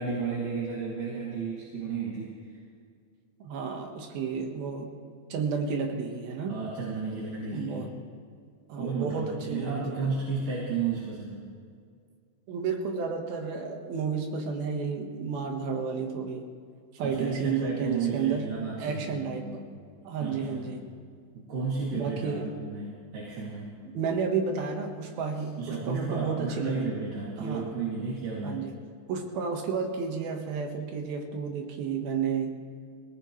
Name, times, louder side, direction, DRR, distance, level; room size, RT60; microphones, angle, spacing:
voice 1, 0.0-2.4 6.5-7.9 8.8-11.4 17.0-19.6 20.2-20.7 21.3-23.7 25.6-28.7, right 4 dB, 65° right, -8 dB, 4.2 m, -33 dB
voice 2, 3.4-4.9 5.3-6.6 7.5-7.9 8.7-10.1 12.5-16.5 16.9-18.5 18.8-19.6 20.0-20.8 21.9-22.5 23.9-26.9 27.4-27.8 28.4-28.7 29.1-32.5, right 5 dB, 85° right, 3 dB, 3.3 m, -31 dB
22.0 x 19.0 x 3.2 m, 2.2 s
omnidirectional pair, 4.1 m